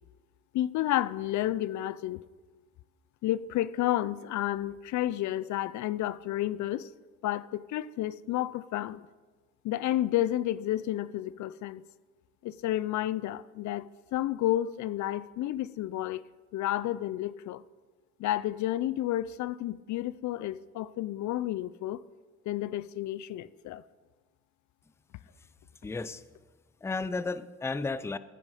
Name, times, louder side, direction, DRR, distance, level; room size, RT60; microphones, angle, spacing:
voice 1, 0.5-2.2 3.2-6.9 7.2-9.1 9.6-11.8 12.4-16.2 16.5-17.6 18.2-22.0 22.5-23.8, left 13 dB, 70° left, 0.5 m, -31 dB
voice 2, 25.8-26.2 26.8-28.2, left 3 dB, 10° left, 0.4 m, -33 dB
14.0 x 9.2 x 4.9 m
cardioid pair, 90°, 30 cm